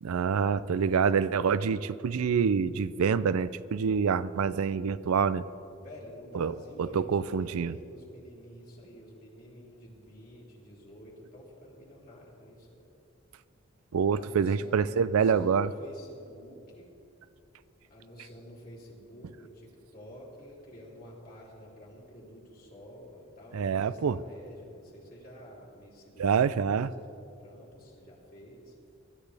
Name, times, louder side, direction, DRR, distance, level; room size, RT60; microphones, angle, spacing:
voice 1, 0.0-5.4 6.3-7.7 13.9-15.7 23.5-24.2 26.2-26.9, right 6 dB, 85° right, 16 dB, 0.4 m, -26 dB
voice 2, 5.8-12.9 14.1-16.9 17.9-26.9 27.4-28.7, equal, 40° left, -5 dB, 3.4 m, -49 dB
21.5 x 12.5 x 3.4 m, 2.7 s
head